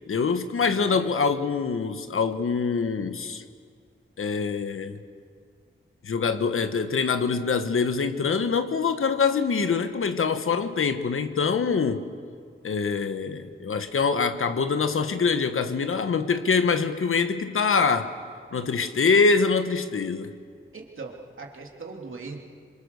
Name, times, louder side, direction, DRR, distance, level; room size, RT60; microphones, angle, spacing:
voice 1, 0.1-3.4 4.2-5.0 6.0-12.1 12.6-18.1 18.5-20.3, left 5 dB, 85° left, 9 dB, 1.3 m, -24 dB
voice 2, 0.7-1.1 20.7-22.4, right 4 dB, 75° right, 1 dB, 2.9 m, -40 dB
26.5 x 23.5 x 6.9 m, 2.1 s
cardioid pair, 55°, 21 cm